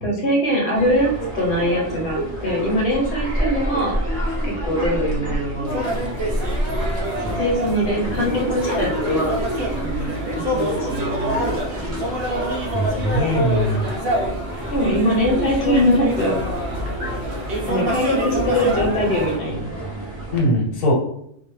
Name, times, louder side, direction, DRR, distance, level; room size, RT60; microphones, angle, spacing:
voice 1, 0.0-1.1 1.3-4.0 4.4-5.9 7.4-9.4 9.8-12.0 14.7-16.4 17.6-19.8, equal, 60° left, -2 dB, 1.0 m, -22 dB
sound 1, 0.7-20.4, right 1 dB, 15° right, 0.5 m, -29 dB
sound 2, 5.7-19.4, equal, 60° right, 0.7 m, -26 dB
voice 2, 12.7-13.9 20.3-20.9, equal, 80° left, -1 dB, 1.1 m, -20 dB
2.3 x 2.2 x 3.0 m, 0.72 s
omnidirectional pair, 1.3 m